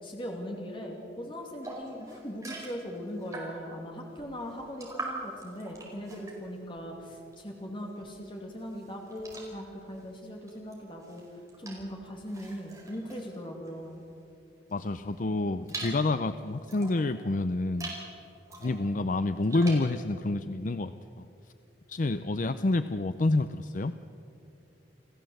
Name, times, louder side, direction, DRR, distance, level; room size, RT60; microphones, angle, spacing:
voice 1, 0.0-11.2 11.6-14.0, equal, 30° left, 1 dB, 2.5 m, -40 dB
sound 1, 1.6-3.8 4.2-7.6 7.9-14.2 14.7-17.1 17.6-18.1 18.5-19.9, right 2 dB, 20° right, 4.9 m, -44 dB
voice 2, 14.7-17.9 18.6-21.2 21.9-23.9, left 2 dB, 45° left, 11 dB, 0.5 m, -28 dB
28.5 x 15.0 x 7.9 m, 2.7 s
head